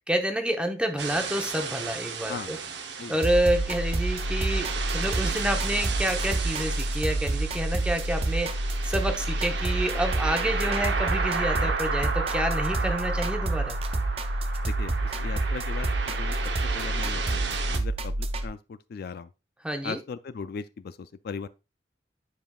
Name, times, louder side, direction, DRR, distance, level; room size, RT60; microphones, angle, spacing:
voice 1, 0.1-2.6 3.1-4.7 4.9-8.5 8.8-13.8 19.6-20.0, right 1 dB, 5° right, 0.8 m, -28 dB
sound 1, 1.0-17.8, right 5 dB, 70° right, 0.8 m, -33 dB
voice 2, 2.3-3.2 9.1-9.2 11.5-11.7 14.6-16.4 16.7-19.3 19.8-21.5, left 5 dB, 60° left, 0.4 m, -39 dB
sound 2, 3.2-18.5, right 2 dB, 35° right, 0.5 m, -28 dB
9.5 x 5.1 x 2.3 m
head